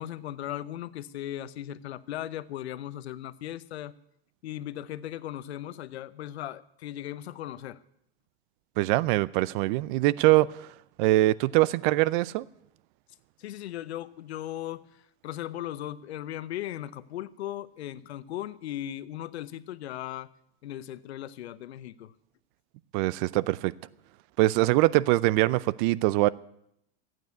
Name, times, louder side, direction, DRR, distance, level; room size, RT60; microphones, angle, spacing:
voice 1, 0.0-3.9 4.4-7.8 13.4-14.9 15.2-20.3 20.6-22.1, left 12 dB, 85° left, 0.9 m, -37 dB
voice 2, 8.8-10.7 11.0-12.4 22.9-23.7 24.4-26.3, right 18 dB, 50° right, 0.6 m, -23 dB
14.5 x 9.1 x 9.3 m
hypercardioid pair, 125°, 32 cm